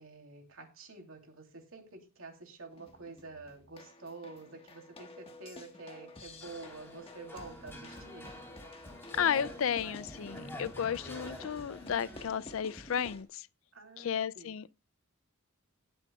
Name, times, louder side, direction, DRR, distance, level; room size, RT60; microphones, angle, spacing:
voice 1, 0.0-8.3 13.7-14.6, right 3 dB, 70° right, 3.0 m, -49 dB
sound 1, 2.7-13.2, left 1 dB, 25° left, 1.4 m, -51 dB
sound 2, 6.4-12.3, left 1 dB, 10° left, 3.2 m, -48 dB
voice 2, 9.1-13.5 14.0-14.7, left 8 dB, 65° left, 0.4 m, -33 dB
19.5 x 7.8 x 2.3 m
head